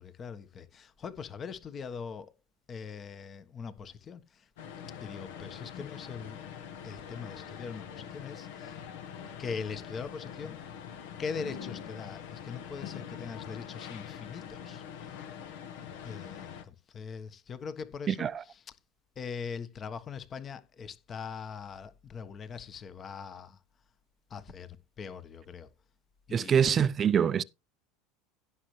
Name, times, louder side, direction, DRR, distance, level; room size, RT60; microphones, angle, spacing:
voice 1, 0.0-2.3 2.7-4.5 5.0-6.4 6.8-8.8 9.4-10.6 11.2-15.2 16.0-18.6 19.2-23.6 24.3-25.7 26.3-26.8, left 6 dB, 35° left, 1.3 m, -41 dB
sound 1, 4.6-16.6, left 8 dB, 75° left, 1.4 m, -44 dB
voice 2, 18.1-18.4 26.3-27.4, right 8 dB, 35° right, 0.5 m, -25 dB
16.0 x 6.5 x 3.2 m
hypercardioid pair, 90°, 0 cm